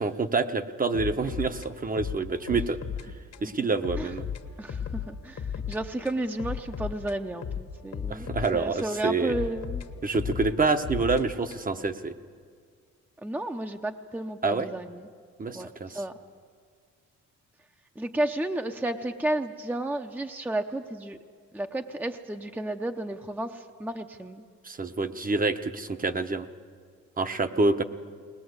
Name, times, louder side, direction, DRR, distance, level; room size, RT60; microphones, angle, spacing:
voice 1, 0.0-2.8 3.4-4.2 8.1-9.3 10.0-12.2 14.4-14.7 15.4-16.0 24.6-26.5 27.2-27.8, right 3 dB, 30° right, 8 dB, 1.0 m, -27 dB
sound 1, 0.9-3.1 3.3-3.5 3.8-5.8 6.1-8.9 9.3-11.8, left 7 dB, 55° left, 1.5 m, -35 dB
voice 2, 4.6-9.9 13.2-15.1 15.5-15.7 15.9-16.1 18.0-21.2 21.5-24.4, right 1 dB, 5° right, 6 dB, 0.8 m, -32 dB
20.0 x 20.0 x 8.0 m, 2.1 s
cardioid pair, 90°, 30 cm